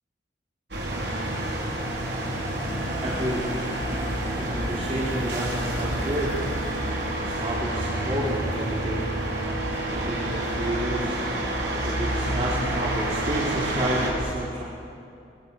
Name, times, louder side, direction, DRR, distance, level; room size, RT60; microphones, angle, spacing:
sound 1, 0.7-14.1, right 1 dB, 65° right, 5.4 m, -28 dB
voice 1, 3.0-3.4 4.2-6.3 7.2-9.0 9.9-11.2 11.8-14.6, right 1 dB, 35° right, -6 dB, 4.0 m, -30 dB
24.5 x 23.5 x 7.3 m, 2.5 s
head